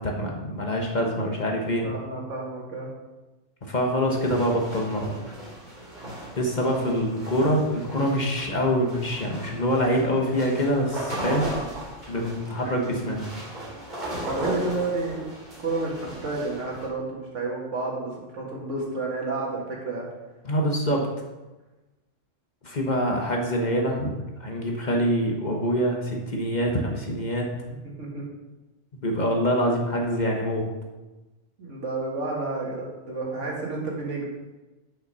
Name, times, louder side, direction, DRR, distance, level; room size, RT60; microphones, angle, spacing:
voice 1, 0.0-1.9 3.6-5.1 6.3-11.5 12.1-13.2 20.4-21.1 22.6-27.5 29.0-30.7, equal, 40° left, 0 dB, 1.2 m, -25 dB
voice 2, 1.8-2.9 12.8-13.1 14.2-15.3 15.6-20.0 28.0-28.2 31.6-34.3, right 3 dB, 80° right, -2 dB, 2.1 m, -31 dB
sound 1, 4.1-16.9, right 1 dB, 40° right, 2.5 m, -36 dB
6.7 x 5.8 x 5.5 m, 1.1 s
omnidirectional pair, 1.3 m